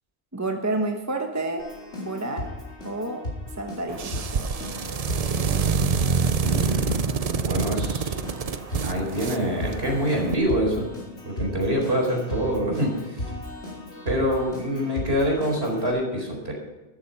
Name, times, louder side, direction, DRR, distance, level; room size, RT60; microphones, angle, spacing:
voice 1, 0.3-1.7 2.0-2.5 2.8-3.3 3.5-4.7, right 2 dB, 15° right, 4 dB, 1.1 m, -30 dB
Keyboard (musical), 1.6-15.9, left 1 dB, 85° left, 4.7 m, -36 dB
sound 1, 3.9-10.3, right 6 dB, 40° right, 0.6 m, -27 dB
voice 2, 6.4-7.1 7.4-8.1 8.8-10.9 11.2-13.3 14.0-16.5, equal, 65° right, 1 dB, 4.6 m, -25 dB
13.0 x 12.5 x 5.5 m, 1.1 s
omnidirectional pair, 1.1 m